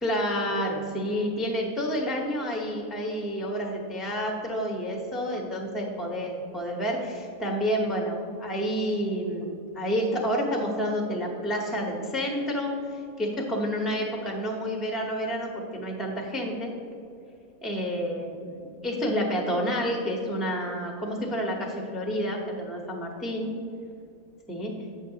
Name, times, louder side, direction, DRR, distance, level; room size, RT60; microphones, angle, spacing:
voice 1, 0.0-16.7 17.6-23.5 24.5-24.7, equal, ahead, 1 dB, 0.6 m, -29 dB
8.7 x 7.2 x 2.8 m, 2.6 s
omnidirectional pair, 1.5 m